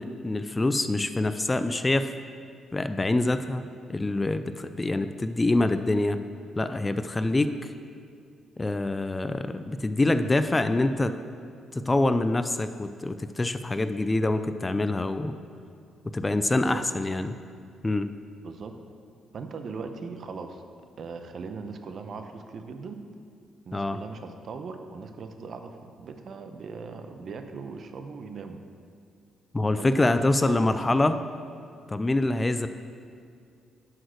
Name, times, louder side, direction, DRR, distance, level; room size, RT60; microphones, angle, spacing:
voice 1, 0.0-2.1 2.7-3.6 3.9-6.2 6.6-7.7 8.6-11.1 11.7-15.3 16.0-17.4 17.8-18.1 23.7-24.0 29.5-31.2 31.9-32.7, left 2 dB, 20° left, 10 dB, 0.4 m, -25 dB
voice 2, 18.4-18.7 19.3-20.6 21.0-23.0 23.7-28.6 29.8-31.0, right 4 dB, 55° right, 7 dB, 0.8 m, -39 dB
9.4 x 6.3 x 6.5 m, 2.3 s
cardioid pair, 90°, 0 cm